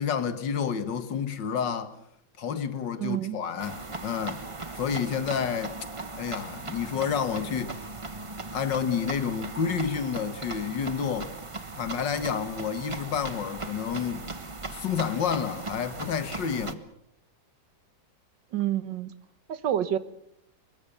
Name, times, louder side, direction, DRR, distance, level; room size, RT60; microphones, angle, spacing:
voice 1, 0.0-2.0 2.4-4.4 4.8-5.8 6.2-7.8 8.5-11.3 11.7-14.3 14.7-16.8, left 7 dB, 75° left, 2.1 m, -29 dB
voice 2, 3.0-3.4 18.5-19.1 19.5-20.0, right 11 dB, 80° right, 1.8 m, -28 dB
sound 1, 3.6-16.7, right 3 dB, 20° right, 0.9 m, -38 dB
24.5 x 21.0 x 6.9 m
omnidirectional pair, 2.0 m